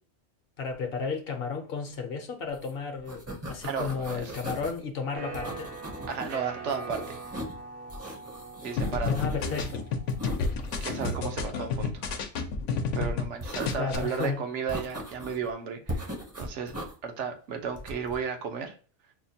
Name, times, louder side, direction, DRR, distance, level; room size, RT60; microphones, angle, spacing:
voice 1, 0.6-5.7 9.0-9.8 13.8-14.4, left 5 dB, 60° left, 0.8 m, -33 dB
sound 1, 2.5-2.7 3.0-4.8 5.3-6.4 6.7-7.6 7.9-9.8 10.1-11.2 13.4-14.3 14.7-15.5 15.9-16.9 17.7-18.2, equal, 20° right, 0.5 m, -38 dB
voice 2, 3.6-4.3 6.1-7.2 8.6-9.2 10.8-12.0 12.9-16.7 17.0-18.7, right 6 dB, 80° right, 1.0 m, -34 dB
sound 2, 5.1-10.8, right 4 dB, 60° right, 0.7 m, -42 dB
sound 3, 8.8-13.3 13.5-14.0, left 4 dB, 90° left, 0.9 m, -30 dB
5.5 x 2.2 x 2.6 m
omnidirectional pair, 1.2 m